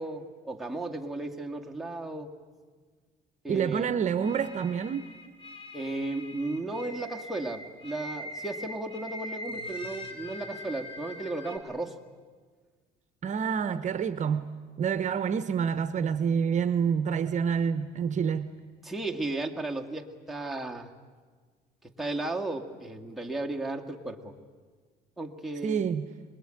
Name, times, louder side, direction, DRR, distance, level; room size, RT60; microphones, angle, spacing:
voice 1, 0.0-2.3 3.4-3.9 5.7-12.0 18.8-20.9 21.8-24.3 25.2-25.8, right 2 dB, ahead, 2.1 m, -35 dB
voice 2, 3.5-5.1 13.2-14.5 14.8-18.5 25.6-26.1, right 7 dB, 45° right, 0.9 m, -28 dB
sound 1, 4.2-11.6, left 1 dB, 30° left, 3.1 m, -42 dB
25.5 x 21.0 x 9.0 m
cardioid pair, 110°, 17 cm